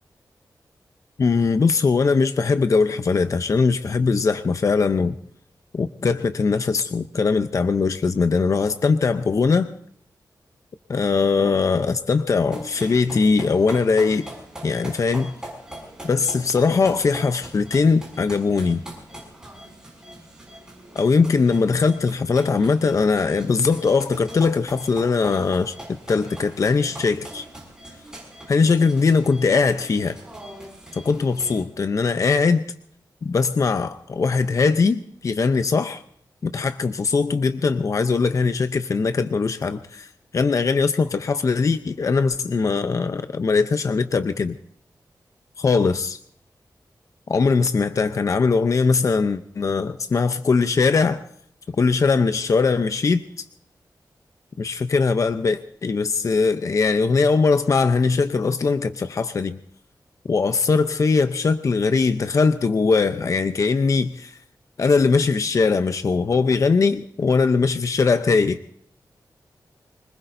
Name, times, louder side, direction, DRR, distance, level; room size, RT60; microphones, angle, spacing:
voice 1, 1.2-5.2 5.7-9.7 10.9-14.3 14.6-15.3 16.0-18.8 20.9-27.4 28.5-30.2 30.9-32.6 33.2-36.0 36.4-40.1 40.3-44.6 45.6-46.2 47.3-51.2 51.7-53.4 54.6-59.6 60.3-64.4 64.8-68.6, left 4 dB, 50° left, 0.6 m, -20 dB
sound 1, 12.5-31.6, right 1 dB, 10° right, 6.4 m, -41 dB
25.5 x 20.0 x 2.6 m
wide cardioid pair, 140°, 7 cm